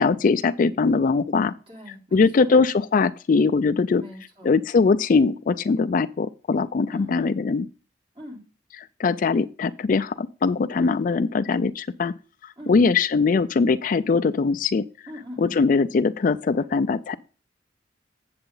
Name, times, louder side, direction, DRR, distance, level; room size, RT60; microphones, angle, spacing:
voice 1, 0.0-1.5 2.1-4.0 4.4-7.7 9.0-12.1 12.7-14.8 15.4-17.2, left 4 dB, 45° left, 12 dB, 0.4 m, -21 dB
voice 2, 1.7-2.6 3.9-4.5 6.9-7.2 8.1-8.4 10.8-11.0 12.6-12.8 15.1-15.6, left 1 dB, 30° right, -1 dB, 3.3 m, -41 dB
8.0 x 7.7 x 3.8 m, 0.36 s
head